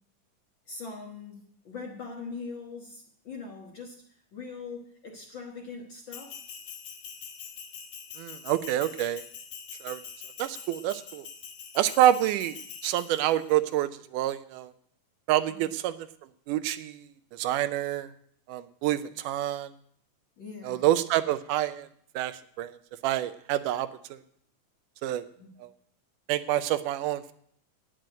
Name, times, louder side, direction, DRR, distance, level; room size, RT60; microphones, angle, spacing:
voice 1, 0.7-1.4 1.6-6.4 15.5-15.7 20.4-20.9 25.4-25.5, left 4 dB, 50° left, 0 dB, 1.6 m, -41 dB
Bell, 6.1-13.5, left 7 dB, 80° left, 2.9 m, -44 dB
voice 2, 8.2-9.2 9.8-10.0 10.4-11.3 11.8-12.6 12.8-14.7 15.3-16.0 16.5-17.1 17.4-18.1 18.5-19.7 20.6-21.9 22.2-22.8 23.0-24.2 25.0-25.3 25.6-25.7 26.3-27.3, right 13 dB, 80° right, 12 dB, 2.1 m, -27 dB
9.4 x 7.5 x 9.1 m, 0.65 s
omnidirectional pair, 3.7 m